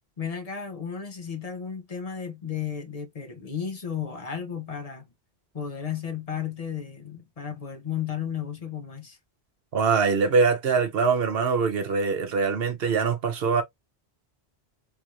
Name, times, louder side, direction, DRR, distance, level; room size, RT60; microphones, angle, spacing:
voice 1, 0.2-5.0 5.5-9.2, left 8 dB, 40° left, 0.8 m, -33 dB
voice 2, 9.7-13.6, right 5 dB, 65° right, 1.1 m, -23 dB
3.5 x 2.5 x 3.0 m
omnidirectional pair, 1.1 m